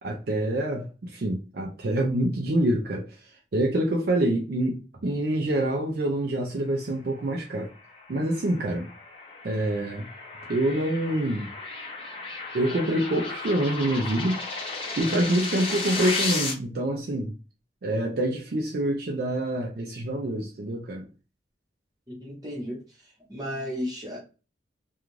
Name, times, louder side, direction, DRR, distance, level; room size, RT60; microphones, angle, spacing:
voice 1, 0.0-3.2 3.5-7.7 8.1-8.9 9.4-10.1 10.5-11.5 12.5-14.4 15.0-17.3 17.8-21.1, right 1 dB, 50° right, 0 dB, 0.4 m, -26 dB
sound 1, 7.7-16.5, left 3 dB, 30° left, 0.6 m, -34 dB
voice 2, 22.1-22.8 23.3-24.2, equal, 20° right, -3 dB, 1.0 m, -33 dB
2.4 x 2.3 x 3.0 m, 0.33 s
head